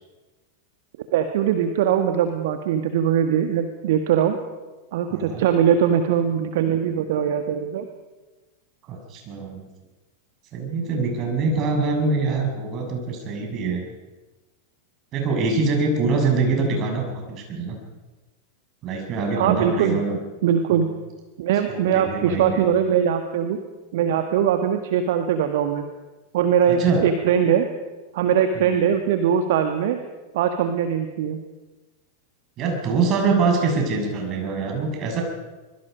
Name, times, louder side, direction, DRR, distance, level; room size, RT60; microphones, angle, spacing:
voice 1, 1.1-4.4 4.9-7.9 19.4-20.0 20.4-20.9 21.4-23.6 23.9-25.8 26.3-27.7 28.1-30.0 30.3-31.4, right 8 dB, 55° right, 7 dB, 1.6 m, -21 dB
voice 2, 5.1-5.4 8.9-9.6 10.5-13.8 15.1-17.8 18.8-20.2 21.7-22.7 26.7-27.0 28.5-28.8 32.6-35.2, right 4 dB, 35° right, 2 dB, 6.5 m, -24 dB
25.0 x 22.0 x 5.3 m, 1.2 s
figure-of-eight pair, 90°, 0 cm